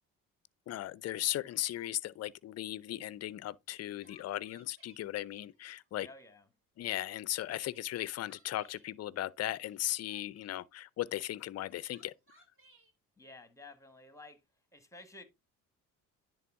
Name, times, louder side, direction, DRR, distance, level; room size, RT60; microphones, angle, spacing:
voice 1, 0.7-6.1 6.8-12.1, left 14 dB, 40° left, 0.5 m, -37 dB
Crying sobbing, 0.7-0.8 1.1-2.2 3.4-5.0 5.5-6.3 7.4-8.9 9.6-10.6 11.4-12.9, right 2 dB, 30° right, 3.2 m, -66 dB
voice 2, 6.0-6.5 13.2-14.4 14.7-15.2, left 2 dB, 5° left, 1.5 m, -52 dB
10.0 x 3.5 x 3.6 m
hypercardioid pair, 60°, 40 cm